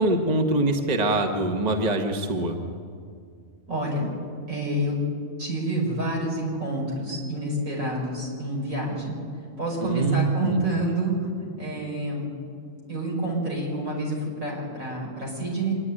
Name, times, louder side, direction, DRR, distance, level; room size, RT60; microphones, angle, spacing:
voice 1, 0.0-2.6 9.8-10.8, right 2 dB, 35° right, 4 dB, 1.2 m, -24 dB
voice 2, 3.7-4.1 4.5-5.0 5.4-9.2 9.6-11.3 11.6-12.3 12.9-15.7, right 1 dB, 75° right, -3 dB, 5.9 m, -28 dB
25.5 x 10.5 x 9.9 m, 2.3 s
omnidirectional pair, 1.4 m